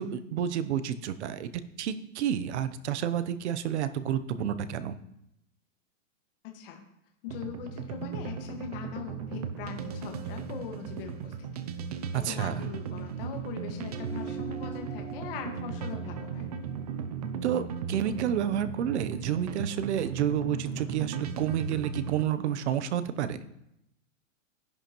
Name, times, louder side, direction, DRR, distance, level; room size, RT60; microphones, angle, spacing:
voice 1, 0.0-1.5 1.8-5.0 12.1-12.6 17.4-23.4, right 9 dB, 60° right, 12 dB, 0.8 m, -30 dB
voice 2, 7.2-11.6 12.1-16.5, left 7 dB, 45° left, 2 dB, 1.6 m, -41 dB
sound 1, 7.3-22.2, right 6 dB, 30° right, 0.4 m, -37 dB
sound 2, 13.8-18.6, right 6 dB, 5° left, 1.5 m, -44 dB
11.0 x 11.0 x 3.0 m, 0.84 s
supercardioid pair, 165°, 39 cm